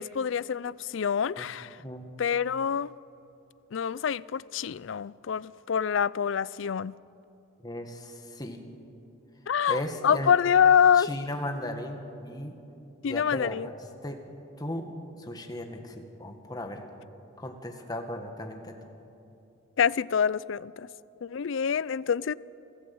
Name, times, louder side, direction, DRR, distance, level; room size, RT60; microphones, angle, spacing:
voice 1, 0.0-1.8 2.2-2.9 3.7-6.9 9.5-11.1 13.0-13.7 19.8-20.9 21.2-22.3, left 7 dB, 65° left, 0.4 m, -26 dB
voice 2, 7.6-8.6 9.7-10.3 10.9-12.6 13.0-13.7 14.0-14.2 14.6-14.9 15.2-16.8 17.4-18.7, left 1 dB, 20° left, 1.8 m, -36 dB
27.5 x 14.5 x 8.6 m
head